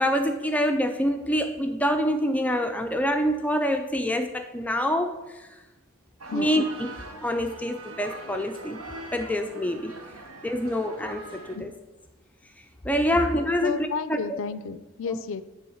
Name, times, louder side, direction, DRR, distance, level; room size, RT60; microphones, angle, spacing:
voice 1, 0.0-5.5 6.3-6.6 7.2-8.8 9.1-9.9 10.4-11.7 12.8-13.8 14.3-14.4, equal, 5° left, 6 dB, 0.4 m, -26 dB
sound 1, 6.2-11.6, right 2 dB, 80° right, 1.0 m, -42 dB
voice 2, 13.6-15.4, left 5 dB, 65° left, 13 dB, 0.4 m, -32 dB
10.0 x 3.4 x 6.3 m, 1.1 s
head